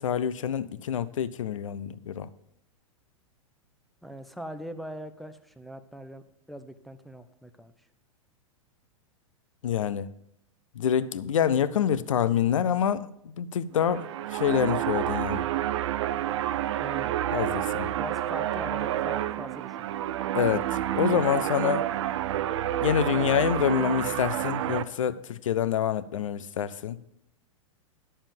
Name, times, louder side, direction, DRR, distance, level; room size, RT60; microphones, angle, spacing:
voice 1, 0.0-2.3 9.6-10.1 10.7-15.5 17.3-17.9 20.3-21.9 22.8-27.0, left 9 dB, 65° left, 0.6 m, -27 dB
voice 2, 4.0-6.2 6.5-7.7 16.7-17.2 18.0-19.9, equal, ahead, 0.6 m, -41 dB
sound 1, 13.7-24.8, right 12 dB, 55° right, 0.6 m, -29 dB
11.0 x 7.1 x 5.3 m
figure-of-eight pair, 100°, 18 cm